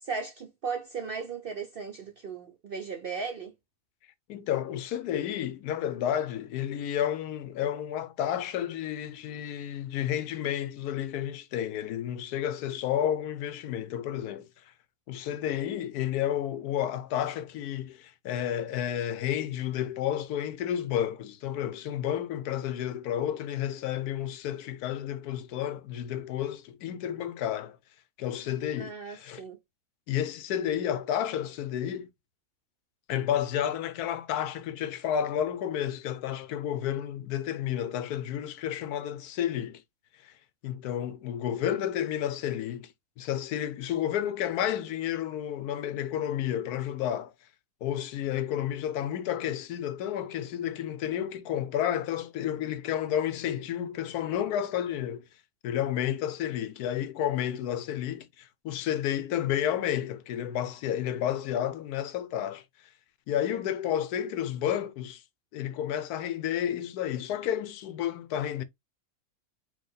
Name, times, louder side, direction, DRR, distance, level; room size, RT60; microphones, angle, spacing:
voice 1, 0.0-3.5 28.8-29.6, right 5 dB, 60° right, 0.6 m, -36 dB
voice 2, 4.3-14.5 15.1-27.8 28.2-29.4 30.1-32.1 33.1-39.8 40.2-40.3 40.6-47.3 47.8-55.3 55.6-62.6 63.3-65.2 65.5-68.6, left 10 dB, 85° left, 1.1 m, -31 dB
4.8 x 2.3 x 3.8 m
omnidirectional pair, 1.6 m